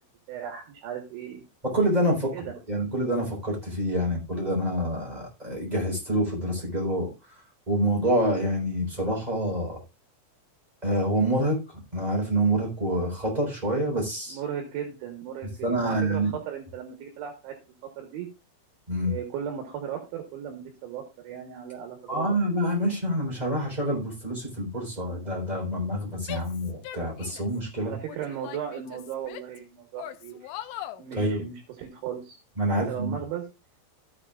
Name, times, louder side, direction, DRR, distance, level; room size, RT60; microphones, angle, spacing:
voice 1, 0.3-1.4 2.3-2.5 14.3-17.6 18.0-18.3 19.0-22.5 27.8-30.5 31.0-32.4 32.9-33.5, right 9 dB, 75° right, 3 dB, 3.6 m, -36 dB
voice 2, 1.6-7.1 7.7-9.8 10.8-14.4 15.6-16.3 18.9-19.1 22.1-27.9 31.1-31.4 32.6-33.2, right 1 dB, 10° right, -3 dB, 3.4 m, -27 dB
Female speech woman speaking / Yell, 26.2-27.6 28.0-29.6 30.0-31.0, left 12 dB, 85° left, 3.2 m, -40 dB
14.0 x 8.5 x 2.5 m, 0.29 s
omnidirectional pair, 5.5 m